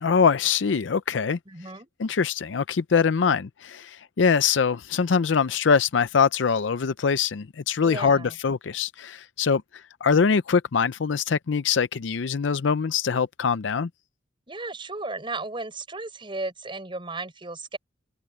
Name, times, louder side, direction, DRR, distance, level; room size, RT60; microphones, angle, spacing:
voice 1, 0.0-1.4 2.0-13.9, left 6 dB, 80° left, 0.5 m, -23 dB
voice 2, 1.5-1.9 7.8-8.4 14.5-17.8, right 3 dB, 25° right, 4.8 m, -35 dB
head